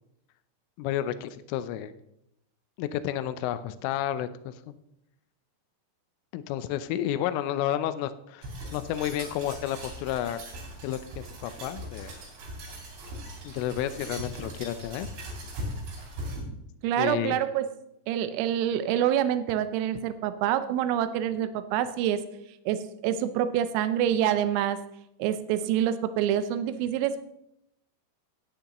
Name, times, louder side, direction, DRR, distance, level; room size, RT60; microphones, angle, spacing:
voice 1, 0.8-1.9 2.8-4.8 6.3-10.4 10.8-12.2 13.4-15.1 17.0-17.4, left 11 dB, 85° left, 12 dB, 3.1 m, -31 dB
sound 1, 8.4-16.4, right 1 dB, 60° right, 5.2 m, -40 dB
voice 2, 16.8-17.7 18.1-22.2 22.7-24.8 25.2-27.2, right 10 dB, 85° right, 11 dB, 3.3 m, -26 dB
16.5 x 9.1 x 3.0 m, 0.82 s
omnidirectional pair, 5.9 m